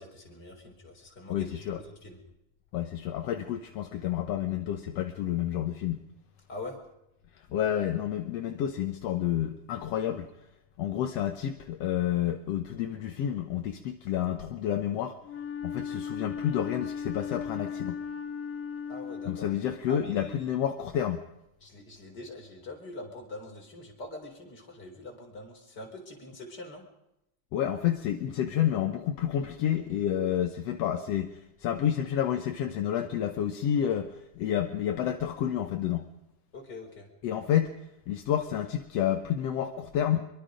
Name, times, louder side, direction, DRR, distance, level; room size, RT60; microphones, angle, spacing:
voice 1, 0.0-2.2 6.5-6.8 18.9-19.5 19.9-20.5 21.6-26.8 36.5-37.1, left 2 dB, 30° left, 1 dB, 4.7 m, -44 dB
voice 2, 1.3-1.8 2.7-6.0 7.5-10.3 10.8-15.2 15.6-18.0 19.3-21.2 27.5-36.1 37.2-37.8 38.1-40.2, left 10 dB, 65° left, 6 dB, 1.8 m, -29 dB
Wind instrument woodwind instrument, 15.2-20.0, left 6 dB, 50° left, 3.1 m, -37 dB
24.5 x 23.0 x 5.1 m, 0.85 s
omnidirectional pair, 3.7 m